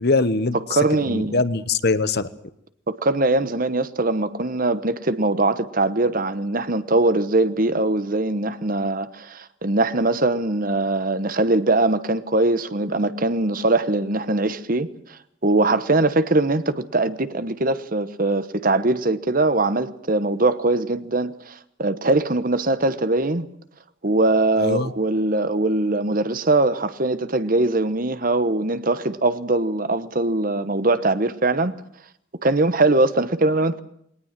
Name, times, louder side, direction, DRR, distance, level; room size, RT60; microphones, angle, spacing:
voice 1, 0.0-0.6 1.1-2.3 24.6-24.9, left 3 dB, 55° left, 1.1 m, -22 dB
voice 2, 0.7-1.4 2.9-23.5 24.0-31.7 32.4-33.8, right 2 dB, 45° right, 1.1 m, -21 dB
21.5 x 18.5 x 7.5 m
head